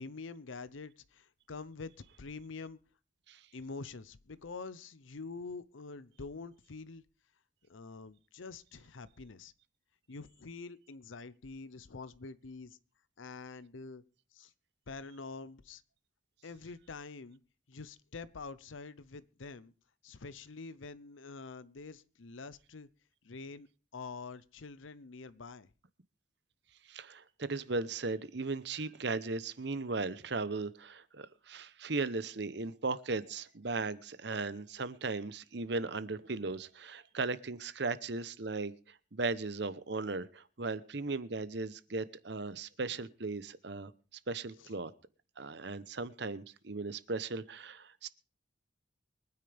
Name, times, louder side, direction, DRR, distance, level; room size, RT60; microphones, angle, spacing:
voice 1, 0.0-1.9 2.2-2.8 3.5-7.0 7.7-9.5 10.1-12.8 13.2-14.0 14.3-14.5 14.9-15.8 16.4-17.4 17.7-19.7 20.0-22.9 23.2-23.7 23.9-25.7, left 4 dB, 80° left, 15 dB, 0.7 m, -46 dB
voice 2, 26.9-43.9 44.3-44.9 45.4-48.1, right 3 dB, 60° right, 15 dB, 0.9 m, -37 dB
24.0 x 9.6 x 3.4 m, 0.39 s
head